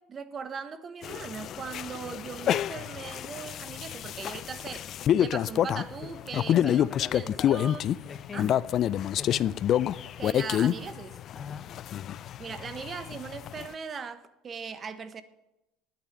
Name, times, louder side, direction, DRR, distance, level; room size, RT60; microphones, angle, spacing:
voice 1, 0.0-4.9 5.2-7.9 8.3-8.5 10.2-11.2 12.2-15.2, right 6 dB, 35° right, 1.2 m, -39 dB
sound 1, 1.0-13.7, left 10 dB, 50° left, 0.4 m, -28 dB
voice 2, 6.3-7.6 8.0-8.6 9.2-9.6 11.3-11.8, left 6 dB, 35° left, 0.8 m, -41 dB
10.0 x 8.9 x 9.8 m
supercardioid pair, 85°, 0 cm